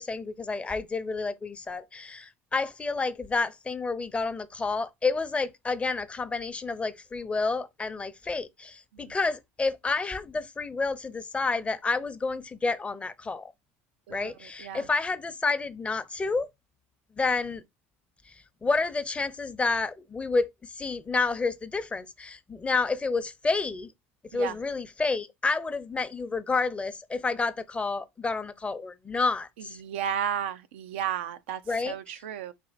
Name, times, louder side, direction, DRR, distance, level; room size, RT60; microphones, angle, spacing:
voice 1, 0.0-13.5 14.1-16.5 17.2-17.6 18.3-23.9 24.3-29.8 31.7-32.2, left 4 dB, 20° left, 0.6 m, -30 dB
voice 2, 29.8-31.6 31.9-32.5, right 9 dB, 85° right, 0.5 m, -33 dB
4.4 x 2.8 x 3.9 m
supercardioid pair, 85°, 6 cm